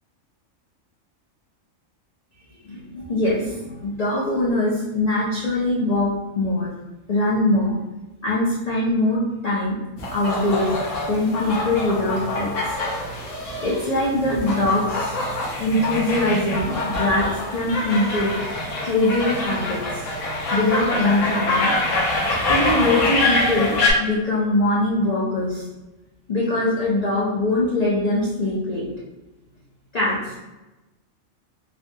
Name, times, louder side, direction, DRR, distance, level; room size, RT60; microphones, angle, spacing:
voice 1, 2.7-6.7 7.1-7.8 8.2-9.8 10.1-10.7 11.1-12.8 13.6-15.1 15.6-18.4 18.8-20.0 20.5-21.7 22.5-25.6 26.3-28.9 29.9-30.4, left 2 dB, 85° left, -6 dB, 0.3 m, -22 dB
sound 1, 10.0-23.9, left 2 dB, 70° left, 1.0 m, -25 dB
3.5 x 2.2 x 2.6 m, 1.1 s
omnidirectional pair, 1.5 m